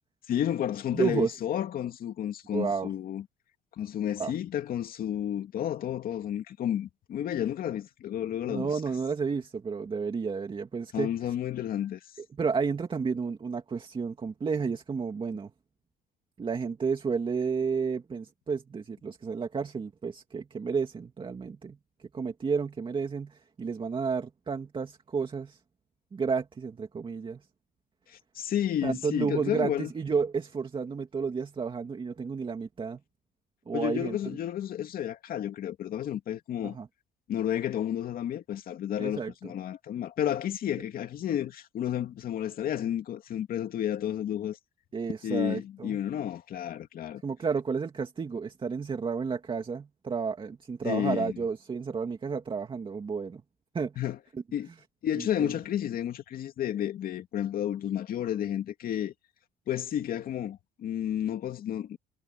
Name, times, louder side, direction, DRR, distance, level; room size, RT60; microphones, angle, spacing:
voice 1, 0.3-3.2 3.8-8.8 10.9-12.0 28.1-29.9 33.7-36.8 37.3-44.6 45.2-47.2 50.8-51.3 54.0-54.2 54.5-54.7 55.0-59.1 59.7-62.0, left 10 dB, 60° left, 2.5 m, -31 dB
voice 2, 0.9-1.4 2.5-2.9 4.2-4.3 8.5-11.1 12.3-15.5 16.4-25.6 26.1-27.4 28.8-33.0 33.7-34.2 36.6-36.9 39.0-39.5 44.9-46.0 47.2-53.4 53.7-54.0 54.3-54.4 55.2-55.5, right 5 dB, 30° right, 2.4 m, -31 dB
cardioid pair, 110°, 17 cm